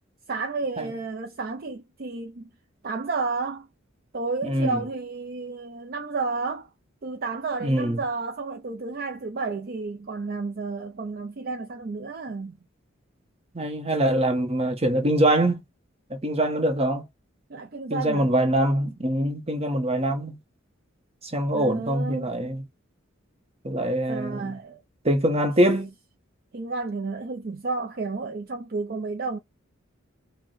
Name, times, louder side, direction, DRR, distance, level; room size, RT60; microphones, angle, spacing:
voice 1, 0.3-2.5 2.8-3.7 4.1-6.7 7.0-12.6 17.5-18.3 21.5-22.3 24.1-24.8 26.5-29.4, right 4 dB, 50° right, 0.5 m, -31 dB
voice 2, 4.4-4.8 7.6-8.0 13.5-15.6 16.1-17.0 17.9-20.4 21.3-22.6 23.6-24.6 25.0-25.9, right 1 dB, 30° right, 1.1 m, -24 dB
4.7 x 2.2 x 3.9 m
head